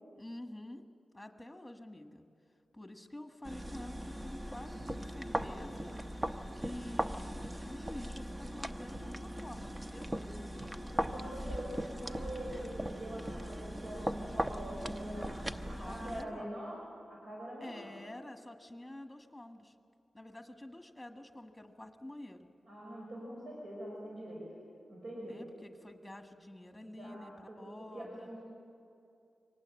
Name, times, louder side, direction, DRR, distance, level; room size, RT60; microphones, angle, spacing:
voice 1, 0.2-0.9 1.1-2.3 2.7-5.9 6.6-10.2 11.2-11.8 15.8-16.5 17.6-19.7 20.1-22.5 25.2-28.3, left 1 dB, 5° left, 5 dB, 1.5 m, -48 dB
sound 1, 3.4-16.2, right 1 dB, 15° right, 0.7 m, -39 dB
voice 2, 10.9-15.4 15.7-16.8 17.1-17.9 22.7-24.5 24.9-25.4 26.9-28.4, right 1 dB, 70° right, -3 dB, 5.6 m, -44 dB
23.5 x 19.0 x 8.7 m, 2.5 s
wide cardioid pair, 125°, 0 cm